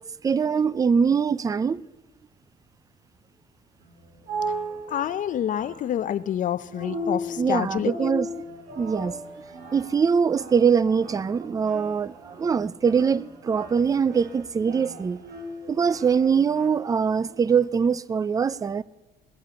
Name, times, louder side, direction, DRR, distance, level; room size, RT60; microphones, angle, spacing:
voice 1, 0.2-1.8 7.4-8.3 8.8-9.2 9.7-15.2 15.7-18.8, right 6 dB, 20° right, 0.4 m, -23 dB
sound 1, 3.8-16.7, equal, 55° right, 3.2 m, -37 dB
voice 2, 4.9-8.1, left 10 dB, 50° left, 0.5 m, -28 dB
sound 2, 6.8-17.7, right 8 dB, 90° right, 1.5 m, -52 dB
21.0 x 7.4 x 8.2 m
cardioid pair, 110°, 17 cm